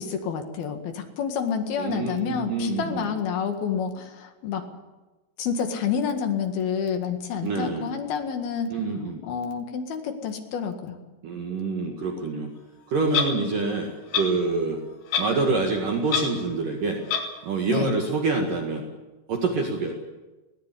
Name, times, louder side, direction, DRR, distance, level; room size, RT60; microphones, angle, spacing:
voice 1, 0.0-4.7 5.4-8.7 9.2-11.0 17.7-17.9, left 7 dB, 60° left, 5 dB, 3.6 m, -29 dB
voice 2, 1.8-3.1 7.4-7.9 8.7-9.2 11.2-12.5 12.9-14.8 15.2-17.0 17.4-18.8 19.3-19.9, right 3 dB, 55° right, 2 dB, 3.1 m, -26 dB
Clock, 13.1-13.3 14.1-14.3 15.1-15.4 15.7-15.8 16.1-16.3 17.1-17.3, left 7 dB, 90° left, 5.3 m, -24 dB
21.0 x 18.5 x 8.4 m, 1.1 s
omnidirectional pair, 5.2 m